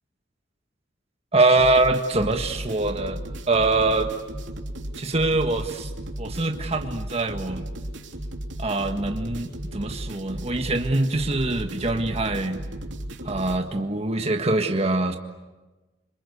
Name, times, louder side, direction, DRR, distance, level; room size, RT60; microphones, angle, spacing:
voice 1, 1.3-3.2 3.5-4.1 5.0-5.9 6.2-7.7 8.6-12.6 13.2-15.2, right 2 dB, 35° right, 5 dB, 1.6 m, -23 dB
sound 1, 1.6-13.6, right 1 dB, 70° right, 3.4 m, -35 dB
27.0 x 26.5 x 8.2 m, 1.2 s
head